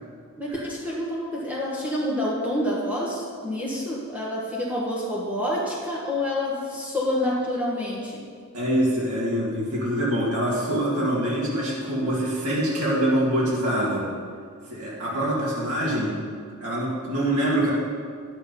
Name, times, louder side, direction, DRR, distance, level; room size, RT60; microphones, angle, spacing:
voice 1, 0.4-8.2, left 1 dB, 5° right, -6 dB, 1.5 m, -28 dB
voice 2, 8.5-14.1 14.7-16.1 16.6-17.7, right 1 dB, 85° right, -7 dB, 2.4 m, -24 dB
11.0 x 6.9 x 5.4 m, 2.1 s
head